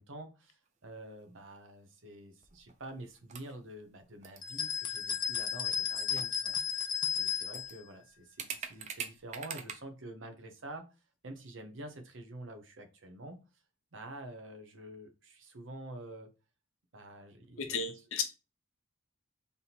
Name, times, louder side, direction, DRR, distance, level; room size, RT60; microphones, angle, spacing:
voice 1, 0.0-6.9 7.2-10.8 11.2-13.4 13.9-16.3 16.9-17.6, right 1 dB, 65° right, 0.8 m, -47 dB
sound 1, 0.9-1.3 1.6-1.7 2.5-2.9 3.2-3.5 4.2-4.7 5.9-6.0 6.2-6.8 7.1-7.2 7.5-7.8 8.4-9.7, right 7 dB, 35° right, 0.4 m, -43 dB
sound 2, 4.4-7.7, left 7 dB, 20° left, 0.5 m, -34 dB
voice 2, 17.6-18.2, left 5 dB, 80° left, 0.9 m, -34 dB
3.5 x 2.8 x 4.1 m
head